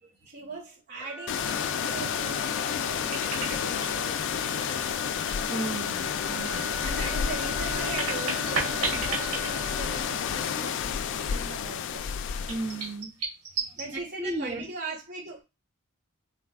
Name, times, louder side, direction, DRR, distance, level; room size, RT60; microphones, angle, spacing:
voice 1, 0.3-4.3 6.8-12.1 13.8-15.4, right 3 dB, 50° right, 2.3 m, -40 dB
sound 1, 1.0-10.9, right 2 dB, 10° right, 0.8 m, -40 dB
sound 2, 1.3-13.0, left 8 dB, 60° left, 0.3 m, -30 dB
sound 3, 2.8-4.0 4.5-5.5 5.8-5.9 7.4-10.3 10.6-10.7 12.5-13.8, right 4 dB, 85° right, 1.5 m, -34 dB
voice 2, 4.4-6.8 12.5-13.2 13.6-14.6, right 2 dB, 30° right, 1.3 m, -37 dB
3.9 x 2.3 x 3.4 m
head